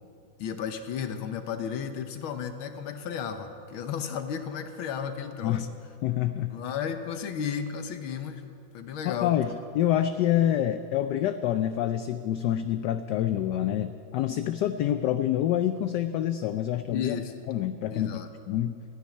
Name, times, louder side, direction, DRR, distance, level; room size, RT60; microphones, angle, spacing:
voice 1, 0.4-5.7 6.5-8.5 8.7-9.4 16.9-17.4 17.9-18.3, left 7 dB, 90° left, 8 dB, 1.8 m, -33 dB
voice 2, 6.0-6.6 9.0-17.2 17.5-18.2 18.5-18.8, left 11 dB, 75° left, 9 dB, 1.0 m, -27 dB
14.0 x 10.0 x 9.9 m, 2.5 s
omnidirectional pair, 2.2 m